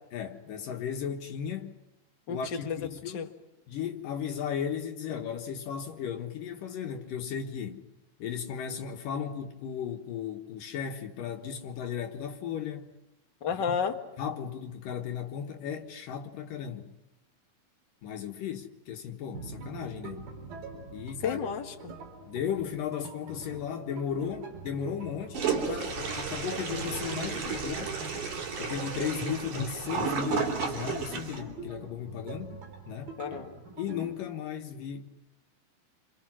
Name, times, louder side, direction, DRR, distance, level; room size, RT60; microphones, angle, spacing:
voice 1, 0.1-1.8 2.3-3.3 3.7-7.8 8.2-12.9 14.2-16.9 18.0-20.3 20.9-21.4 22.3-28.0 28.6-32.6 32.9-33.2 33.8-35.1, left 8 dB, 70° left, 3.0 m, -35 dB
voice 2, 2.3-2.8 3.0-3.3 13.4-14.0 21.2-21.9 33.2-33.6, left 7 dB, 45° left, 1.6 m, -32 dB
sound 1, 19.3-34.1, right 4 dB, 85° right, 5.9 m, -44 dB
Toilet flush, 25.3-31.4, right 5 dB, 60° right, 4.7 m, -33 dB
29.5 x 26.5 x 6.2 m
omnidirectional pair, 4.1 m